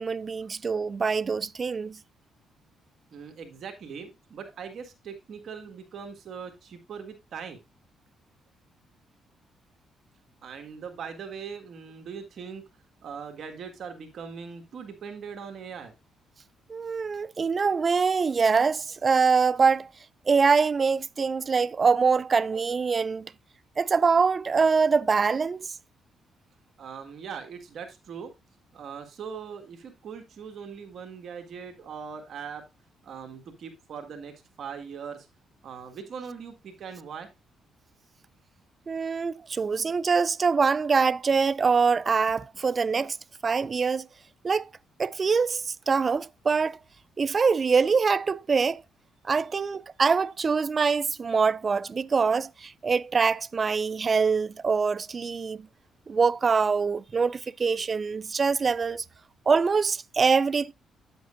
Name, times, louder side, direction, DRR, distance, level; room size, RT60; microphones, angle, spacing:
voice 1, 0.0-2.0 16.7-19.9 20.3-23.3 23.8-25.7 38.9-43.2 43.4-44.1 44.4-44.7 45.0-46.8 47.2-48.8 49.2-55.7 56.1-59.0 59.5-60.7, right 5 dB, 35° right, 0.3 m, -24 dB
voice 2, 3.1-7.6 10.4-12.6 13.0-15.9 22.5-22.6 26.8-28.3 28.7-32.6 33.0-35.3 35.6-37.3 57.7-57.9, right 6 dB, 60° right, 1.8 m, -40 dB
9.5 x 7.9 x 2.5 m
cardioid pair, 90°, 0 cm